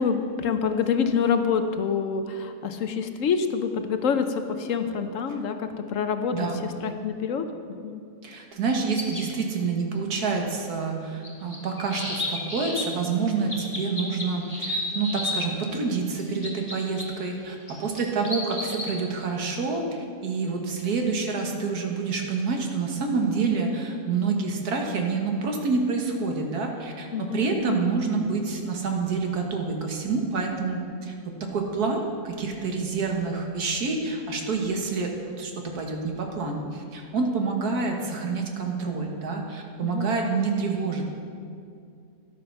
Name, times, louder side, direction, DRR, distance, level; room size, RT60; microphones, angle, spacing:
voice 1, 0.0-7.5 7.8-8.0 27.1-28.0 39.8-40.2, left 6 dB, 65° left, 8 dB, 1.0 m, -27 dB
voice 2, 6.3-6.6 8.2-41.0, right 4 dB, 90° right, 2 dB, 1.9 m, -28 dB
sound 1, 8.9-9.2 11.2-12.8 13.5-15.5 16.1-17.0 17.7-18.9, left 2 dB, 25° left, 2.2 m, -31 dB
12.0 x 8.5 x 5.9 m, 2.4 s
omnidirectional pair, 1.6 m